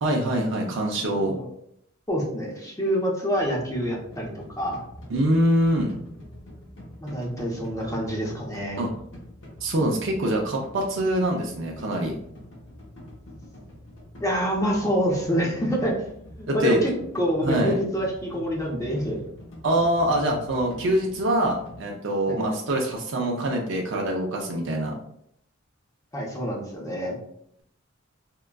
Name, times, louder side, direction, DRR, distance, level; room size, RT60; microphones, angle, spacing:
voice 1, 0.0-1.4 5.1-5.9 8.8-8.9 9.6-12.1 16.5-16.8 17.4-17.8 19.6-24.9, right 1 dB, 60° right, 0 dB, 0.5 m, -24 dB
voice 2, 2.1-4.8 7.0-8.8 14.2-15.9 16.4-19.2 22.3-22.4 26.1-27.2, equal, 15° left, -3 dB, 0.7 m, -26 dB
sound 1, 3.3-21.8, equal, 65° left, 0.9 m, -45 dB
3.6 x 2.2 x 2.2 m, 0.71 s
head